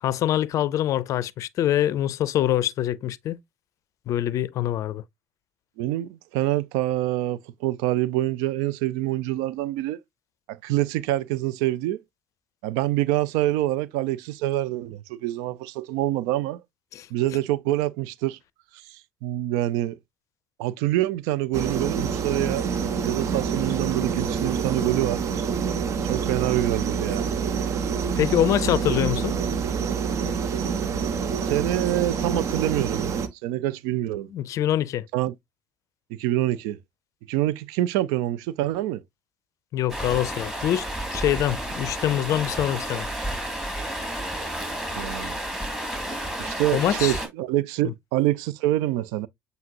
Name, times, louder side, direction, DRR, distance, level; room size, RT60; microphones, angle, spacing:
voice 1, 0.0-3.4 4.1-5.0 16.9-17.1 28.2-29.3 34.3-35.1 39.7-43.1 46.7-47.2, left 12 dB, 55° left, 0.4 m, -24 dB
voice 2, 5.8-10.0 10.5-12.0 12.6-16.6 17.1-18.4 18.9-20.0 20.6-22.7 23.0-25.2 26.0-27.3 31.5-34.3 35.1-35.3 36.1-36.8 37.3-39.0 44.9-45.4 46.4-49.3, right 15 dB, 70° right, 0.4 m, -26 dB
sound 1, 21.5-33.3, right 6 dB, 50° right, 0.8 m, -27 dB
Stream, 39.9-47.3, right 1 dB, 10° right, 2.2 m, -31 dB
7.3 x 2.7 x 2.7 m
hypercardioid pair, 55°, 6 cm